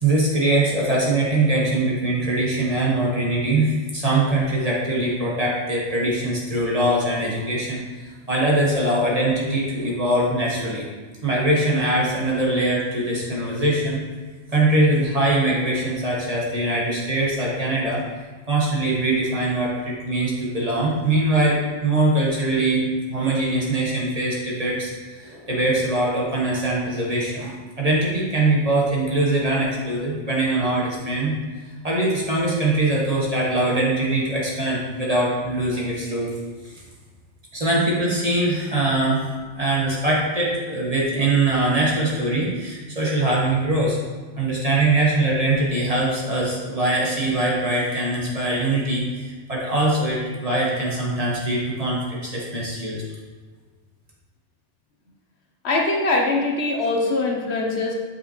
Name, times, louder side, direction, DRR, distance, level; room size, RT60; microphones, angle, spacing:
voice 1, 0.0-10.9 11.2-14.0 14.5-18.0 18.5-31.3 31.8-36.3 36.6-36.8 37.5-39.3 39.5-44.0 44.4-53.0, right 2 dB, 30° right, -4 dB, 1.4 m, -22 dB
voice 2, 55.6-57.9, left 2 dB, 65° left, 1 dB, 1.1 m, -22 dB
7.3 x 5.8 x 3.0 m, 1.4 s
omnidirectional pair, 1.2 m